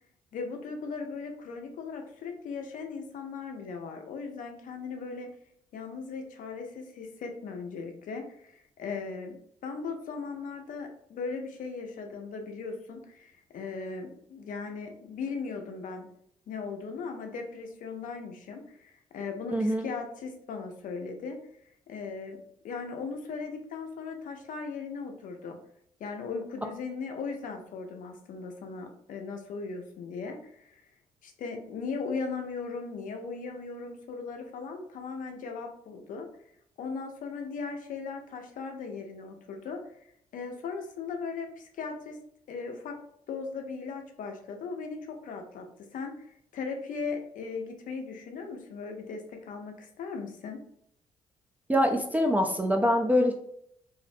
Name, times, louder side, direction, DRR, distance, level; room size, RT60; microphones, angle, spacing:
voice 1, 0.3-5.3 5.7-9.3 9.6-16.1 16.5-21.4 21.9-22.4 22.6-25.6 26.0-30.8 31.2-36.3 36.8-39.8 40.3-42.2 42.5-43.0 43.3-45.7 45.9-50.6, left 4 dB, 60° left, 4 dB, 0.5 m, -38 dB
voice 2, 19.5-19.9 51.7-53.3, equal, 10° right, 2 dB, 0.4 m, -24 dB
2.4 x 2.1 x 2.5 m, 0.71 s
hypercardioid pair, 50°, 15 cm